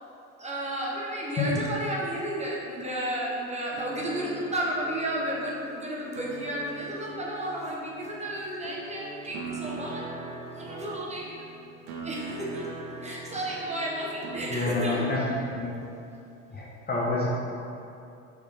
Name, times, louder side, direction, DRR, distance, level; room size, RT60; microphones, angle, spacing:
voice 1, 0.4-10.0 10.5-11.5 12.0-12.7 13.0-15.1, right 1 dB, 15° right, -4 dB, 0.9 m, -32 dB
sound 1, 3.7-14.5, right 3 dB, 75° right, 0.7 m, -41 dB
voice 2, 14.5-15.7 16.5-17.3, left 3 dB, 25° left, -4 dB, 0.7 m, -28 dB
4.8 x 3.2 x 3.2 m, 2.7 s
hypercardioid pair, 70°, 39 cm